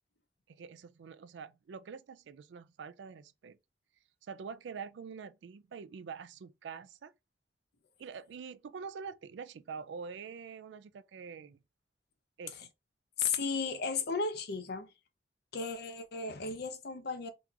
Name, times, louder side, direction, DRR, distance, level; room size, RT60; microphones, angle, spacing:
voice 1, 0.5-3.6 4.2-7.1 8.0-11.6 12.4-12.7, right 6 dB, 80° right, 0.4 m, -45 dB
voice 2, 13.2-14.9 15.5-17.3, left 5 dB, 65° left, 0.7 m, -34 dB
2.9 x 2.4 x 3.7 m
head